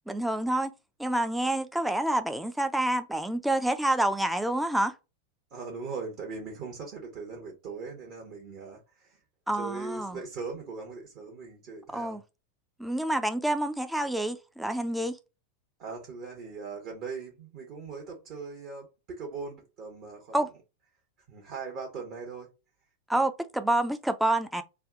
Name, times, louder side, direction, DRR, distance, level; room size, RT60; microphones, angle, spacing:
voice 1, 0.1-0.7 1.0-4.9 9.5-10.2 11.9-12.2 12.8-15.2 20.3-20.5 23.1-24.6, right 1 dB, 5° right, 0.5 m, -28 dB
voice 2, 5.5-9.2 9.5-12.2 15.8-20.4 21.3-22.5, right 4 dB, 40° right, 1.0 m, -40 dB
3.3 x 2.3 x 3.6 m
figure-of-eight pair, 90°, 0 cm